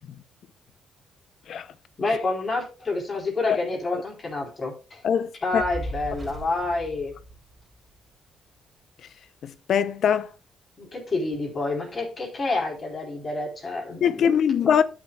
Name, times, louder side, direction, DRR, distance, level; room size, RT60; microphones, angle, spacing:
voice 1, 2.0-5.0 5.4-7.2 10.8-14.3 14.6-14.7, left 2 dB, 35° left, 4.3 m, -28 dB
voice 2, 5.0-5.6 9.4-10.3 14.0-14.8, left 8 dB, 65° left, 0.7 m, -22 dB
Fire, 5.5-8.0, right 1 dB, 30° right, 4.2 m, -37 dB
13.0 x 6.2 x 2.4 m
cardioid pair, 90°, 0 cm